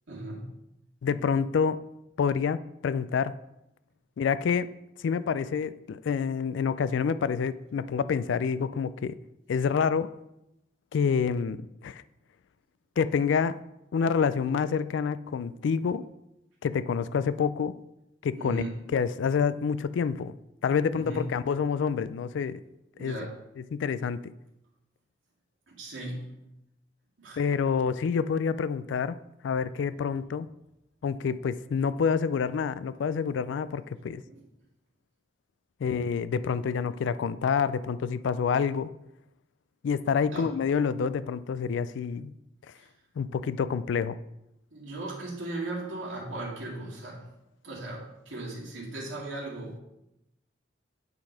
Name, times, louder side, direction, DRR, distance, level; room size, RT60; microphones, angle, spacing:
voice 1, 0.1-0.6 18.3-18.8 20.9-21.3 22.9-23.3 25.7-26.4 27.2-27.4 34.3-34.4 40.3-40.5 42.8-42.9 44.7-47.3 47.6-49.8, right 2 dB, 90° right, -4 dB, 2.1 m, -37 dB
voice 2, 1.0-1.8 2.2-2.6 2.8-3.3 4.2-4.7 5.0-9.1 9.5-10.1 10.9-12.0 13.0-13.5 13.9-16.0 16.6-17.7 18.2-18.6 18.9-20.4 20.6-22.6 23.0-23.1 23.7-24.2 27.4-29.2 29.4-30.5 31.0-34.2 35.8-38.9 39.8-42.3 43.2-44.2, left 6 dB, 75° left, 14 dB, 0.3 m, -27 dB
8.8 x 3.9 x 5.1 m, 0.88 s
head